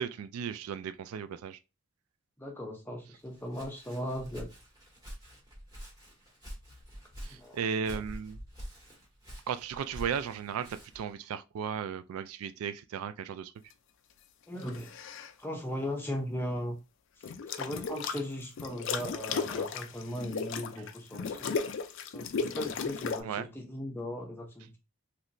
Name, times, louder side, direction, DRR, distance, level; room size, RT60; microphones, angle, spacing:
voice 1, 0.0-1.6 7.2-8.4 9.5-13.5 23.2-23.5, right 7 dB, 80° right, 0.3 m, -35 dB
voice 2, 2.4-4.5 7.3-8.0 14.5-14.9 15.4-16.8 17.2-21.6 22.1-24.8, equal, 10° left, 0.6 m, -38 dB
Walk footsteps, 3.2-11.1, equal, 15° right, 1.6 m, -47 dB
sound 1, 14.6-15.3 17.2-18.2 18.6-23.2, left 5 dB, 55° left, 0.4 m, -35 dB
3.1 x 2.8 x 2.6 m
head